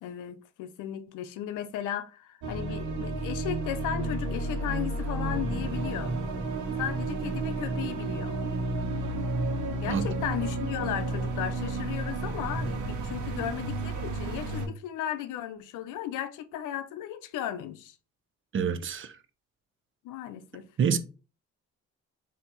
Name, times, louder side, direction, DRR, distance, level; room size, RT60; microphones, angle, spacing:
voice 1, 0.0-6.2 6.8-8.4 9.8-17.9 20.0-20.7, left 11 dB, 90° left, 0.6 m, -35 dB
sound 1, 2.4-14.7, right 2 dB, 75° right, 1.2 m, -31 dB
voice 2, 18.5-19.1 20.8-21.0, right 6 dB, 40° right, 0.7 m, -26 dB
4.5 x 2.8 x 3.9 m
cardioid pair, 90°, 30 cm